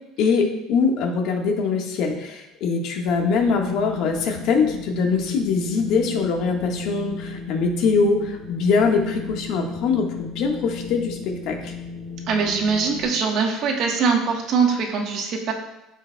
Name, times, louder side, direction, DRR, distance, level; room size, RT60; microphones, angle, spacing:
voice 1, 0.2-11.7, left 4 dB, 60° left, 1 dB, 1.5 m, -22 dB
Wind, 3.0-13.0, left 5 dB, 80° left, 2.6 m, -36 dB
voice 2, 12.3-15.5, right 5 dB, 55° right, 2 dB, 1.3 m, -22 dB
13.5 x 5.2 x 2.3 m, 0.92 s
cardioid pair, 140°, 0 cm